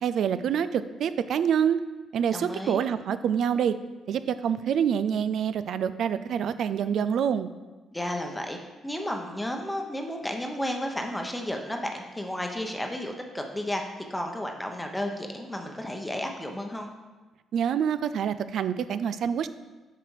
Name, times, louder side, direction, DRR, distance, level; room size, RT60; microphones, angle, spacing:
voice 1, 0.0-1.8 2.1-3.8 4.1-7.5 17.5-19.5, right 8 dB, 70° right, 13 dB, 0.4 m, -26 dB
voice 2, 2.3-2.8 7.9-8.6 8.8-16.9, left 1 dB, 10° left, 3 dB, 0.9 m, -33 dB
7.7 x 5.0 x 4.8 m, 1.2 s
cardioid pair, 90°, 0 cm